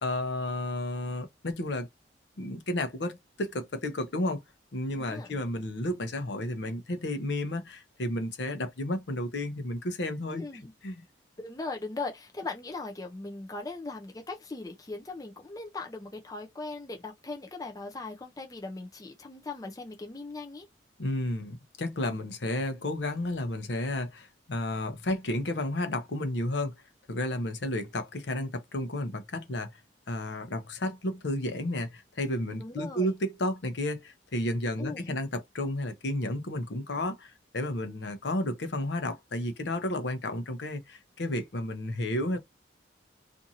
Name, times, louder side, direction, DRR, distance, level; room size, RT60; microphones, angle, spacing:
voice 1, 0.0-1.9 2.4-4.4 4.7-10.4 10.8-11.0 21.0-26.7 27.1-29.7 30.1-42.4, left 1 dB, 70° left, 0.7 m, -32 dB
voice 2, 5.0-5.3 10.3-10.7 11.4-20.7 28.4-28.5 32.6-33.1 34.8-35.2, left 3 dB, 20° left, 0.5 m, -39 dB
2.6 x 2.5 x 2.7 m
head